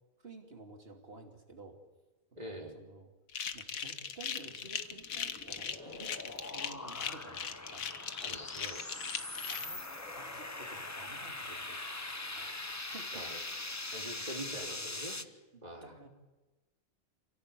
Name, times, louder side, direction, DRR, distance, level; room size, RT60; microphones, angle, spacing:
voice 1, 0.2-1.8 2.4-3.1 3.5-7.8 9.5-9.8 10.1-11.8 12.2-12.6 12.9-13.8 14.6-14.8 15.5-16.1, right 3 dB, 45° right, 3 dB, 3.1 m, -52 dB
voice 2, 2.3-2.8 8.2-8.8 13.1-13.4 13.9-15.2 15.6-16.0, right 1 dB, 30° right, 1 dB, 3.4 m, -44 dB
sound 1, 3.3-9.6, left 7 dB, 90° left, 1.5 m, -39 dB
sound 2, 4.7-15.2, left 2 dB, 15° left, 0.8 m, -42 dB
sound 3, 5.6-7.7 9.8-11.9, left 1 dB, 5° right, 3.1 m, -57 dB
28.0 x 17.0 x 8.5 m, 1.1 s
omnidirectional pair, 1.4 m